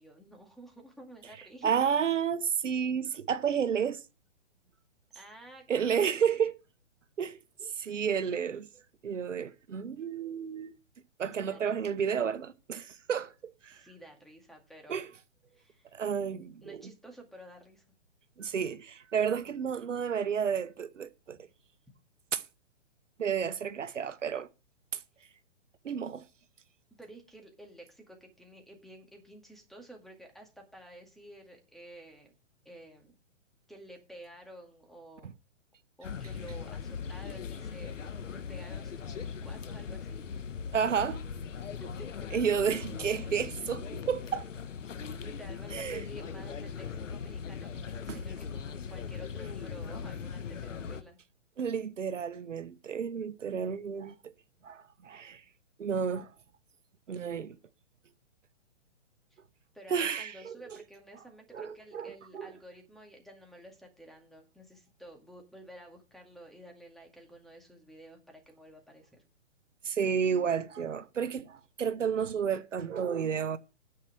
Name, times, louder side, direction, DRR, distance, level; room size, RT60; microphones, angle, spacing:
voice 1, 0.0-2.0 5.1-6.0 11.3-11.8 13.7-15.0 15.5-15.9 16.6-17.8 27.0-32.4 32.7-33.1 33.7-35.3 36.0-40.3 41.5-42.3 45.2-51.2 59.3-59.4 59.7-69.2, right 1 dB, ahead, 2.1 m, -51 dB
voice 2, 1.6-4.0 5.7-6.5 7.2-8.7 9.0-10.8 11.2-13.8 14.9-15.1 15.9-16.8 18.4-21.4 22.3-22.4 23.2-24.5 24.9-25.0 25.8-26.2 40.7-41.2 42.3-44.5 45.7-46.0 48.1-48.2 51.6-54.3 54.6-55.4 55.8-56.3 57.1-57.6 59.9-60.6 61.5-62.5 69.8-73.6, right 7 dB, 80° right, 1.1 m, -31 dB
sound 1, 36.0-51.0, left 6 dB, 80° left, 1.2 m, -39 dB
9.8 x 5.8 x 7.6 m
hypercardioid pair, 140°, 37 cm